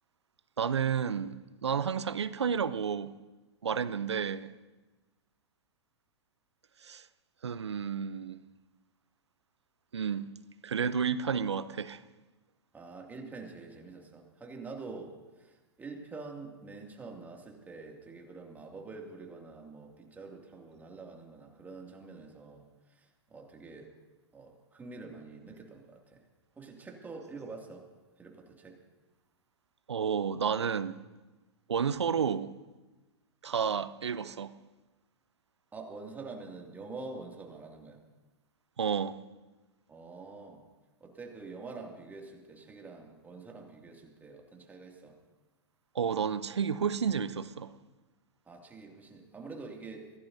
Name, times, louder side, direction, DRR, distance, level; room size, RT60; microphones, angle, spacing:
voice 1, 0.6-3.1 3.6-4.5 6.8-7.1 7.4-8.4 9.9-10.3 10.6-12.0 29.9-31.0 31.7-32.5 33.4-34.5 38.8-39.2 45.9-47.7, right 7 dB, 80° right, 0.7 m, -31 dB
voice 2, 12.7-23.9 24.3-26.2 26.6-27.9 28.2-28.8 35.7-38.0 39.9-40.6 41.0-45.2 48.5-50.1, right 3 dB, 10° right, 2.4 m, -46 dB
25.0 x 16.5 x 2.7 m
figure-of-eight pair, 110°, 14 cm